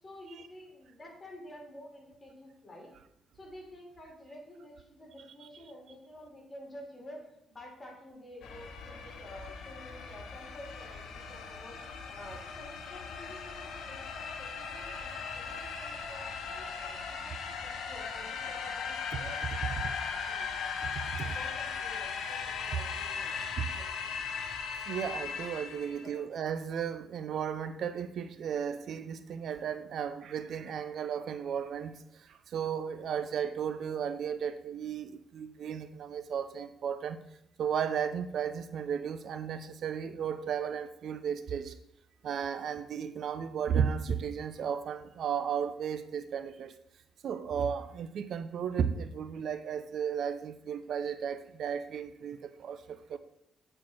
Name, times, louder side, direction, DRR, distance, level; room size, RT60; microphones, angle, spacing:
voice 1, 0.0-2.9 3.3-11.8 12.1-20.0 20.3-20.6 21.2-23.5 23.8-24.1 25.5-26.2, equal, 25° left, -1 dB, 3.2 m, -50 dB
sound 1, 8.4-26.1, left 6 dB, 70° left, 1.0 m, -38 dB
voice 2, 24.9-31.9 32.5-37.2 37.6-41.7 42.2-46.7 47.2-52.8 53.1-53.2, right 7 dB, 65° right, 11 dB, 0.5 m, -34 dB
8.8 x 4.4 x 4.5 m, 0.77 s
cardioid pair, 90°, 0 cm